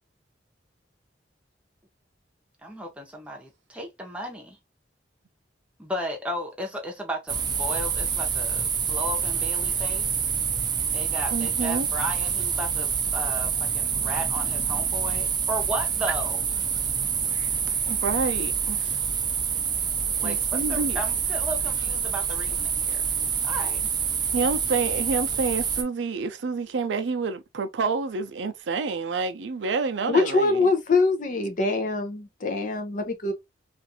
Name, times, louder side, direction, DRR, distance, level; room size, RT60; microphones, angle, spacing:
voice 1, 2.6-4.6 5.8-10.2 10.9-16.4 20.1-23.1 23.4-23.8, equal, 5° right, 0.8 m, -35 dB
sound 1, 7.3-25.8, right 7 dB, 25° right, 0.4 m, -27 dB
voice 2, 11.3-11.9 17.9-19.0 20.2-21.0 24.3-30.7, right 4 dB, 85° right, 0.5 m, -28 dB
voice 3, 30.1-33.3, left 3 dB, 45° left, 0.6 m, -24 dB
2.5 x 2.5 x 2.6 m
head